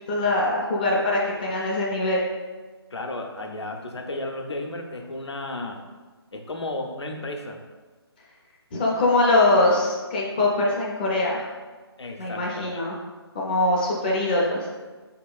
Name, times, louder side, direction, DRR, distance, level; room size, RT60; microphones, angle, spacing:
voice 1, 0.1-2.2 8.7-11.5 12.2-12.9 13.3-14.7, left 2 dB, 20° left, -4 dB, 0.4 m, -22 dB
voice 2, 2.9-5.8 6.3-7.6 12.0-12.8, left 2 dB, 85° left, 3 dB, 0.6 m, -33 dB
4.5 x 2.8 x 2.3 m, 1.3 s
figure-of-eight pair, 150°, 14 cm